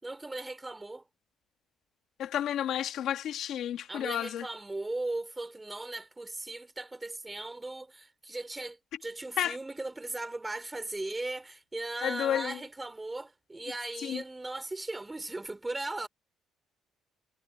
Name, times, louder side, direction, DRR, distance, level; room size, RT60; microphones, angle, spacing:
voice 1, 0.0-1.0 3.9-16.1, right 2 dB, 10° right, 4.4 m, -38 dB
voice 2, 2.2-4.5 9.4-9.6 12.0-12.6 14.0-14.2, left 10 dB, 65° left, 2.3 m, -31 dB
cardioid pair, 145°, 0 cm